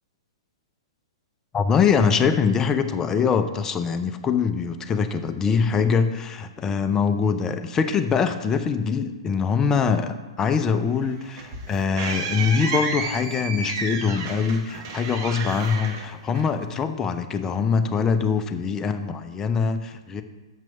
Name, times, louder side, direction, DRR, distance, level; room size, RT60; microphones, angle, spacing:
voice 1, 1.5-20.2, left 6 dB, 20° left, 8 dB, 0.6 m, -23 dB
sound 1, 11.0-16.8, right 4 dB, 45° right, 1.2 m, -32 dB
6.6 x 6.0 x 5.7 m, 1.2 s
figure-of-eight pair, 115°, 3 cm